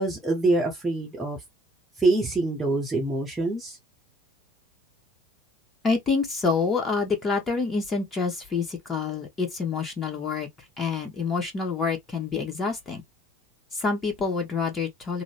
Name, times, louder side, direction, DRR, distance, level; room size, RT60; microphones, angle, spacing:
voice 1, 0.0-1.4 2.0-3.8, right 2 dB, 10° right, 0.9 m, -25 dB
voice 2, 5.8-10.5 10.8-13.0 13.7-15.2, left 4 dB, 20° left, 1.3 m, -27 dB
3.8 x 2.1 x 3.3 m
figure-of-eight pair, 90°, 0 cm